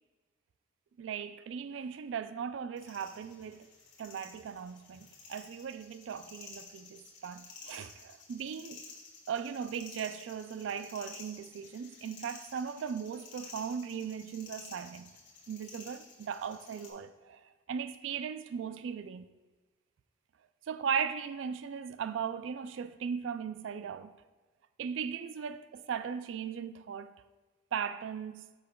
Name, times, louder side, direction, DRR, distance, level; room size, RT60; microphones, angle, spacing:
voice 1, 1.0-3.7 4.0-8.8 9.3-15.1 15.5-19.3 20.7-24.1 24.8-27.1 27.7-28.5, right 7 dB, 80° right, 0.3 m, -38 dB
sound 1, 2.8-16.9, left 4 dB, 75° left, 1.3 m, -52 dB
8.4 x 5.8 x 2.3 m
head